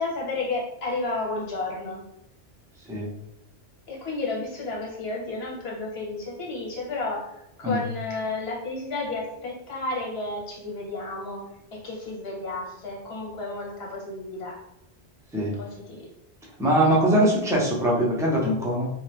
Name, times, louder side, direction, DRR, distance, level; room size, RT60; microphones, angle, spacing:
voice 1, 0.0-2.0 3.9-7.3 7.6-14.6 15.6-16.1, left 3 dB, 65° left, -2 dB, 1.1 m, -32 dB
voice 2, 16.6-18.9, right 1 dB, 5° right, -4 dB, 0.5 m, -22 dB
2.7 x 2.2 x 3.3 m, 0.88 s
omnidirectional pair, 1.1 m